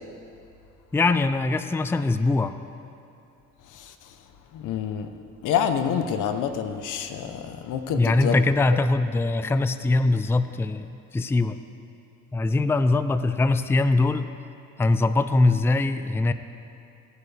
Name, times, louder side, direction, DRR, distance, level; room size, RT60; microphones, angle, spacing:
voice 1, 0.9-2.5 7.9-11.6 12.3-14.3 14.8-16.3, left 2 dB, 10° left, 11 dB, 0.4 m, -22 dB
voice 2, 4.5-5.1 5.4-8.4, left 8 dB, 85° left, 8 dB, 0.9 m, -27 dB
17.5 x 9.2 x 3.3 m, 2.6 s
cardioid pair, 90°, 30 cm